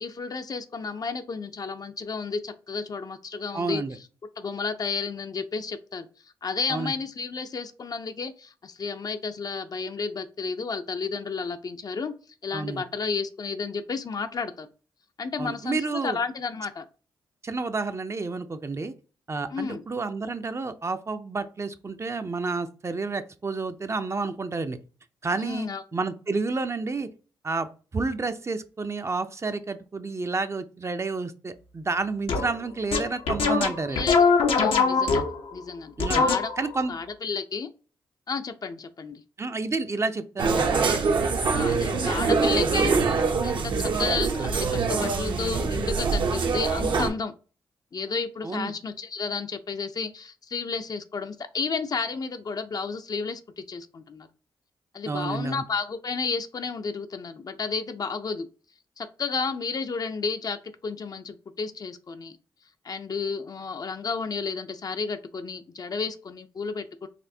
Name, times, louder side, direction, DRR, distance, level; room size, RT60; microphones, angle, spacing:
voice 1, 0.0-3.8 4.4-6.1 6.4-12.1 12.4-14.7 15.2-16.8 19.5-19.8 25.4-25.8 33.9-34.3 34.6-36.5 36.9-37.7 38.3-39.2 41.5-42.9 43.4-47.3 47.9-54.3 54.9-58.5 59.0-62.4 62.8-67.1, left 5 dB, 45° left, 9 dB, 0.4 m, -32 dB
voice 2, 3.5-4.0 6.7-6.9 12.5-12.8 15.4-16.2 17.4-18.9 19.3-24.8 25.2-27.1 27.4-34.0 36.0-36.3 36.6-37.0 39.4-41.0 48.4-48.7 55.1-55.6, right 3 dB, 30° right, 9 dB, 0.4 m, -30 dB
sound 1, 32.3-32.5 32.9-35.5 36.0-36.8, left 5 dB, 80° left, 0.7 m, -22 dB
sound 2, 40.4-47.1, right 4 dB, 65° right, 0.7 m, -24 dB
4.2 x 2.5 x 2.7 m, 0.36 s
cardioid pair, 55°, 9 cm